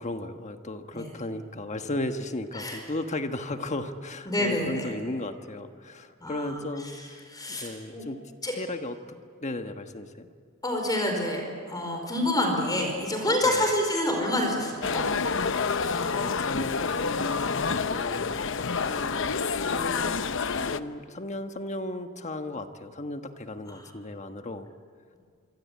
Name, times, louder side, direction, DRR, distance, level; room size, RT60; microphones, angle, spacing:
voice 1, 0.0-7.2 7.5-8.2 8.5-10.3 13.2-13.7 15.5-24.7, left 2 dB, 35° left, 7 dB, 1.3 m, -36 dB
voice 2, 4.3-4.9 6.2-6.6 7.3-8.0 8.4-8.5 10.6-15.0 23.7-23.9, left 1 dB, 20° left, 2 dB, 4.8 m, -27 dB
sound 1, 14.8-20.8, left 5 dB, 65° left, 0.8 m, -28 dB
26.5 x 24.5 x 8.5 m, 2.2 s
head